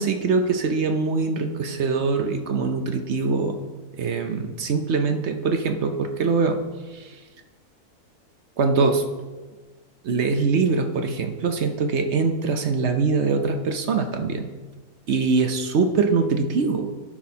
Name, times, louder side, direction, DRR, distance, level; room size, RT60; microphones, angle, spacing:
voice 1, 0.0-3.6 4.0-6.6 6.9-7.1 8.6-9.0 10.0-14.5 15.1-16.9, right 4 dB, 60° right, 6 dB, 0.8 m, -23 dB
14.0 x 6.0 x 2.8 m, 1.3 s
omnidirectional pair, 1.6 m